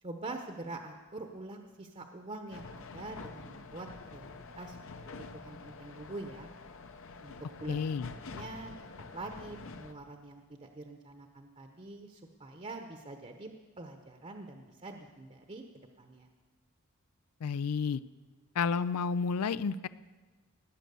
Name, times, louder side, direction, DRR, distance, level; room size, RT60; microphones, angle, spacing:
voice 1, 0.0-4.9 5.3-6.5 7.2-7.8 8.3-8.7 9.1-13.5 13.8-15.6 16.0-16.3, right 2 dB, 30° right, 4 dB, 0.9 m, -45 dB
sound 1, 2.5-9.9, left 3 dB, 60° left, 0.9 m, -47 dB
voice 2, 7.7-8.1 17.4-18.0 18.6-19.9, left 5 dB, 80° left, 15 dB, 0.4 m, -31 dB
18.5 x 9.0 x 6.9 m, 1.3 s
head